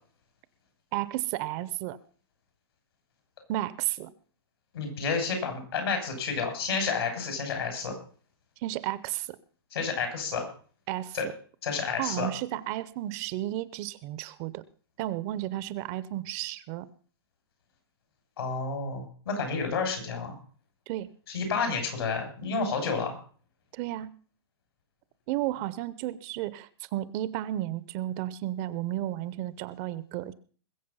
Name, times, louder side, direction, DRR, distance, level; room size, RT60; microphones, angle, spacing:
voice 1, 0.9-2.0 3.5-4.1 8.6-9.4 10.9-11.2 12.0-14.6 15.0-16.9 20.9-21.1 23.7-24.1 25.3-30.3, right 14 dB, 35° right, 17 dB, 0.7 m, -33 dB
voice 2, 4.7-8.0 9.7-10.5 11.1-11.2 11.6-12.3 18.4-20.4 21.3-23.2, left 5 dB, 75° left, 5 dB, 6.5 m, -30 dB
21.5 x 7.4 x 5.5 m, 0.43 s
hypercardioid pair, 150°, 13 cm